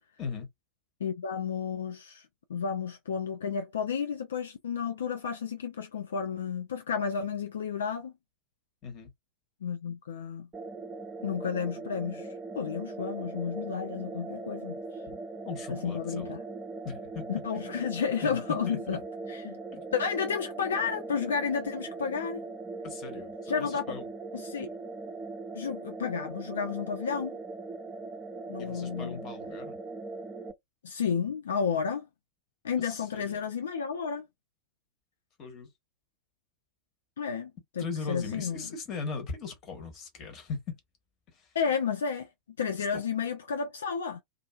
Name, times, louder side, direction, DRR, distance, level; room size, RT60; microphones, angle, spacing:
voice 1, 1.0-8.1 9.6-10.5 11.2-14.8 15.7-16.4 17.3-19.0 19.3-19.6 19.9-22.4 23.5-23.9 24.3-24.7 25.5-27.3 28.5-29.2 30.8-32.1 32.6-34.3 37.2-38.6 41.5-42.3 42.6-44.2, left 6 dB, 65° left, 0.4 m, -32 dB
sound 1, 10.5-30.5, right 3 dB, 15° right, 0.5 m, -40 dB
voice 2, 15.4-16.3 16.8-17.9 18.2-19.0 19.7-19.8 22.8-24.0 28.6-29.8 32.8-33.4 35.4-35.7 37.8-40.8 41.3-41.6 42.9-43.0, left 5 dB, 35° left, 1.2 m, -39 dB
2.6 x 2.5 x 2.2 m
figure-of-eight pair, 90°, 0 cm